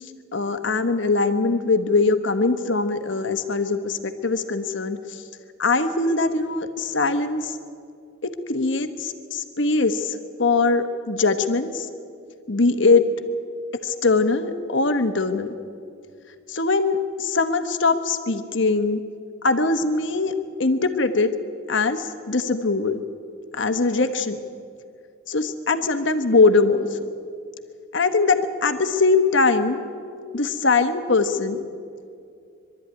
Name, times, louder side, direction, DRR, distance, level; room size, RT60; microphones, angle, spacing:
voice 1, 0.3-5.2 5.6-7.5 8.2-11.9 12.5-13.0 13.8-15.5 16.5-19.0 19.4-20.3 20.6-21.3 21.7-23.0 23.5-24.4 25.3-26.9 27.9-29.8 30.3-31.6, left 3 dB, 60° left, 9 dB, 1.2 m, -21 dB
22.5 x 13.0 x 9.6 m, 2.4 s
head